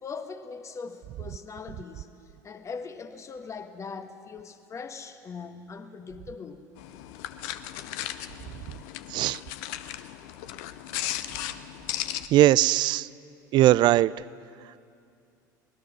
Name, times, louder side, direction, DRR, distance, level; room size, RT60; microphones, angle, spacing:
voice 1, 0.0-2.1 2.4-6.7, left 5 dB, 30° left, 8 dB, 1.5 m, -40 dB
sound 1, 6.8-12.3, left 13 dB, 60° left, 0.8 m, -36 dB
voice 2, 12.3-13.1 13.5-14.1, right 15 dB, 45° right, 21 dB, 0.4 m, -19 dB
24.0 x 19.5 x 6.3 m, 2.5 s
figure-of-eight pair, 70°, 10 cm